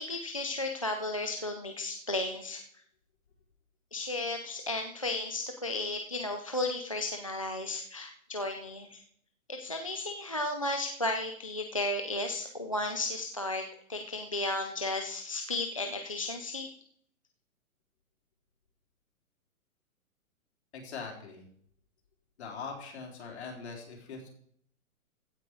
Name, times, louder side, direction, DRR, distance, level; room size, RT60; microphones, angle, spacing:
voice 1, 0.0-2.6 3.9-9.0 9.5-16.7, left 2 dB, 25° left, 4 dB, 0.4 m, -34 dB
voice 2, 20.7-21.5 22.4-24.3, left 5 dB, 50° left, 1 dB, 4.0 m, -42 dB
15.5 x 8.3 x 4.7 m, 0.66 s
hypercardioid pair, 175°, 43 cm